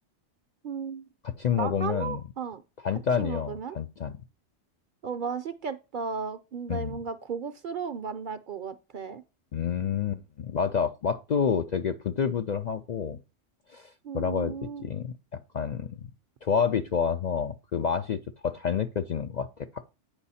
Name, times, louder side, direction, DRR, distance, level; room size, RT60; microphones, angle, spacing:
voice 1, 0.6-1.1 1.6-2.6 3.2-3.8 5.0-9.2 14.0-14.9, right 6 dB, 55° right, 0.6 m, -35 dB
voice 2, 1.2-2.2 2.8-4.1 6.7-7.0 9.5-13.2 13.7-16.1 16.4-19.8, left 7 dB, 55° left, 0.5 m, -29 dB
8.8 x 5.5 x 4.1 m
omnidirectional pair, 1.2 m